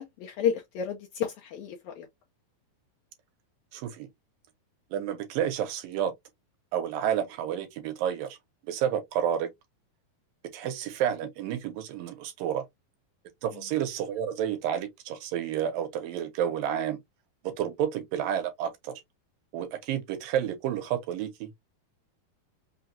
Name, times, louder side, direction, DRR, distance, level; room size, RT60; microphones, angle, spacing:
voice 1, 0.0-2.1, left 8 dB, 90° left, 1.6 m, -31 dB
voice 2, 3.7-4.1 4.9-6.1 6.7-8.4 8.7-9.5 10.5-12.6 13.4-17.0 17.4-18.9 19.5-21.5, right 9 dB, 75° right, 2.5 m, -30 dB
5.7 x 2.3 x 2.7 m
omnidirectional pair, 4.3 m